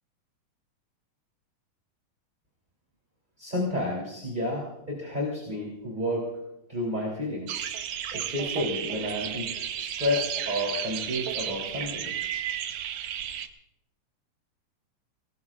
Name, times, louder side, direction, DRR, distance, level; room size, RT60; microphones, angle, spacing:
voice 1, 3.4-6.4 6.7-7.7 8.1-9.5 9.8-12.1, left 1 dB, 15° right, -3 dB, 2.9 m, -31 dB
sound 1, 7.5-13.5, right 9 dB, 70° right, 1.6 m, -33 dB
26.0 x 19.0 x 2.5 m, 0.88 s
omnidirectional pair, 4.0 m